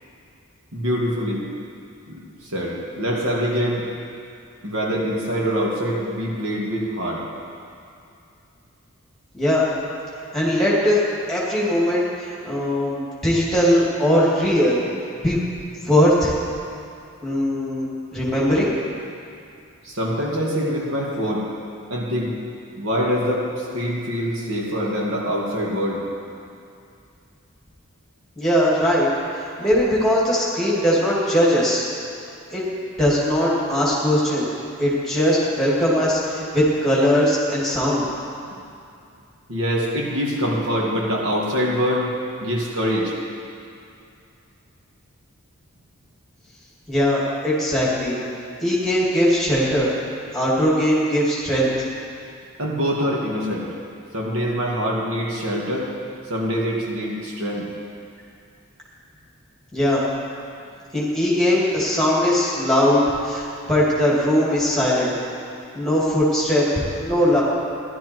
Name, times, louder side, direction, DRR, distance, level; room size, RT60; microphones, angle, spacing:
voice 1, 0.7-1.5 2.1-3.9 4.6-7.2 19.8-21.5 21.9-22.3 22.8-26.0 39.5-42.1 42.4-43.1 52.6-53.7 54.1-55.9 56.3-57.7, equal, 80° right, -3 dB, 2.2 m, -24 dB
voice 2, 9.3-9.7 10.3-11.0 11.3-14.8 15.2-15.4 15.8-16.4 17.2-17.9 18.1-18.7 28.4-29.1 29.6-31.8 32.5-32.6 33.0-34.5 34.8-38.1 46.9-48.2 48.6-49.9 50.3-51.7 59.7-60.0 60.9-65.1 65.7-67.4, equal, ahead, -7 dB, 2.7 m, -20 dB
15.0 x 11.5 x 4.6 m, 2.5 s
head